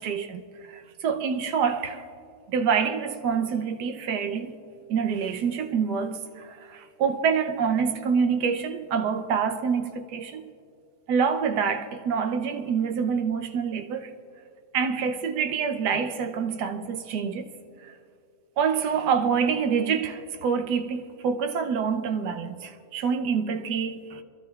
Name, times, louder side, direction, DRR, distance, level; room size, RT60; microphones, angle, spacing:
voice 1, 0.0-2.0 2.5-4.6 4.9-10.5 11.1-14.1 14.7-17.5 17.8-17.9 18.6-24.2, right 6 dB, 80° right, 1.4 m, -26 dB
28.5 x 12.5 x 2.4 m
omnidirectional pair, 1.8 m